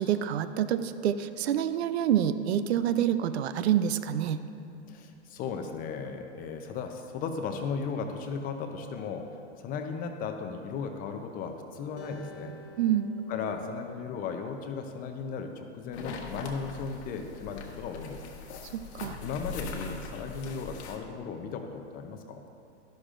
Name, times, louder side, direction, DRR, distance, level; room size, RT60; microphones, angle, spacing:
voice 1, 0.0-4.4 12.8-13.1 18.7-19.2, right 10 dB, 65° right, 12 dB, 0.6 m, -27 dB
voice 2, 4.9-9.3 9.6-12.5 13.3-18.2 19.2-22.4, left 5 dB, 25° left, 5 dB, 0.6 m, -36 dB
Acoustic guitar, 12.0-15.3, left 1 dB, 50° left, 1.4 m, -51 dB
sound 1, 15.9-21.0, left 4 dB, 70° left, 1.4 m, -41 dB
12.0 x 11.5 x 2.5 m, 2.6 s
hypercardioid pair, 135°, 35 cm